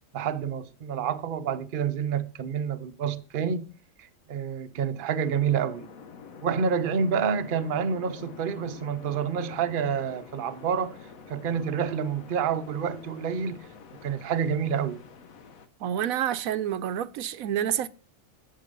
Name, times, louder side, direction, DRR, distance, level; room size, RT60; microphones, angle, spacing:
voice 1, 0.1-3.7 4.0-5.9 6.4-11.0 11.3-13.7 14.0-15.0, right 7 dB, 50° right, 0.8 m, -28 dB
sound 1, 5.2-15.7, left 5 dB, 85° left, 1.4 m, -47 dB
voice 2, 15.8-17.9, right 10 dB, 90° right, 1.1 m, -28 dB
11.0 x 6.6 x 5.3 m
omnidirectional pair, 1.4 m